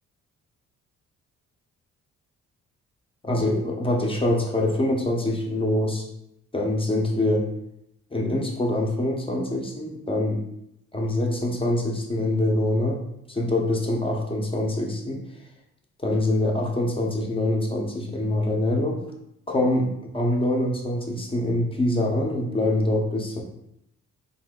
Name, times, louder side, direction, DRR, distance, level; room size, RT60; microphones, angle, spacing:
voice 1, 3.2-6.0 6.5-7.5 8.1-10.4 10.9-13.0 13.3-15.2 16.0-19.0 19.5-23.4, left 1 dB, 20° left, 0 dB, 0.9 m, -24 dB
4.0 x 2.7 x 3.8 m, 0.80 s
cardioid pair, 90°, 30 cm